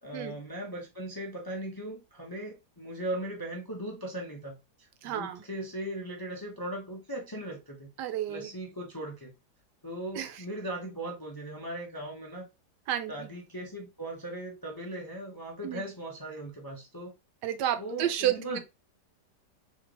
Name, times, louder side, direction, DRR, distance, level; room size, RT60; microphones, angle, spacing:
voice 1, 0.0-7.9 8.3-9.3 9.8-12.5 13.1-17.2 17.8-18.6, right 1 dB, 25° left, 0.4 m, -38 dB
voice 2, 5.0-5.4 8.0-8.5 10.1-10.4 12.9-13.3 15.6-15.8 17.4-18.6, right 11 dB, 80° right, 1.2 m, -31 dB
3.6 x 3.1 x 3.2 m
omnidirectional pair, 1.8 m